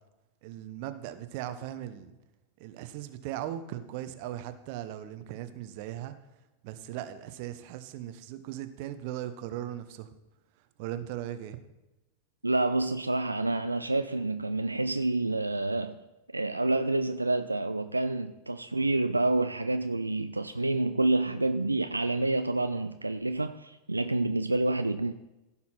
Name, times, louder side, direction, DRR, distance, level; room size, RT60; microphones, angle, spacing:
voice 1, 0.4-2.1 2.6-6.1 6.6-10.1 10.8-11.6, right 12 dB, 45° right, 10 dB, 0.9 m, -38 dB
voice 2, 12.4-15.9 16.3-25.1, right 2 dB, 85° right, 8 dB, 0.4 m, -28 dB
16.0 x 5.6 x 4.4 m, 0.99 s
figure-of-eight pair, 90°, 0 cm